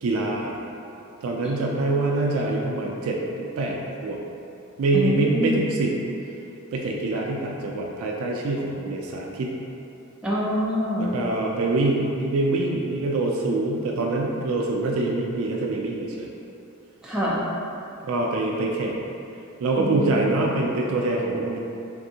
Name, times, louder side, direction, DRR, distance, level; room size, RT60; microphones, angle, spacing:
voice 1, 0.0-0.6 1.2-3.8 4.0-4.2 4.8-5.9 6.7-9.5 11.0-16.3 18.0-19.0 19.6-21.6, right 2 dB, 70° right, 0 dB, 0.3 m, -25 dB
voice 2, 4.9-5.7 10.2-11.1 17.0-17.4 19.7-20.4, equal, 5° right, -7 dB, 0.4 m, -25 dB
3.3 x 2.6 x 2.7 m, 2.8 s
head